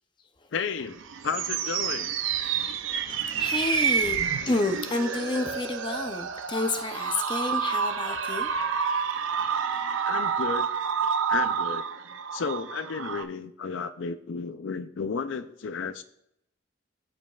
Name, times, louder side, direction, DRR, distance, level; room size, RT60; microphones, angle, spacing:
voice 1, 0.5-1.0 1.2-2.1 10.0-10.7 11.3-11.9 12.3-16.0, left 5 dB, 80° left, 12 dB, 0.4 m, -32 dB
sound 1, 0.9-13.2, right 7 dB, 85° right, 0.5 m, -29 dB
voice 2, 2.4-2.8 3.1-4.2 4.4-8.5, left 2 dB, 25° left, 6 dB, 0.6 m, -30 dB
14.0 x 5.2 x 2.4 m, 0.74 s
head